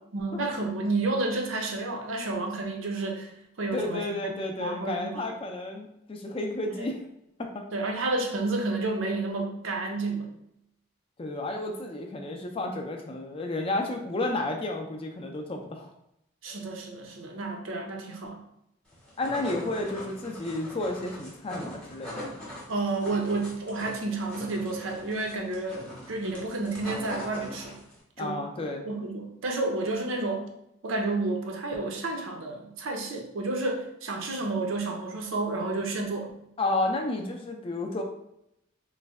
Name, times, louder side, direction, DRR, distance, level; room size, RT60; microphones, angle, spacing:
voice 1, 0.1-3.3 3.6-5.4 7.7-10.3 16.4-18.4 22.7-27.8 28.2-30.5 30.8-36.3, right 2 dB, 80° right, 3 dB, 0.6 m, -31 dB
voice 2, 3.7-7.0 7.4-7.7 11.2-15.9 19.2-22.3 28.2-28.8 36.6-38.0, left 2 dB, 25° left, 3 dB, 0.3 m, -31 dB
sound 1, 18.9-28.0, left 1 dB, 5° left, 0.8 m, -41 dB
3.1 x 2.1 x 3.4 m, 0.80 s
head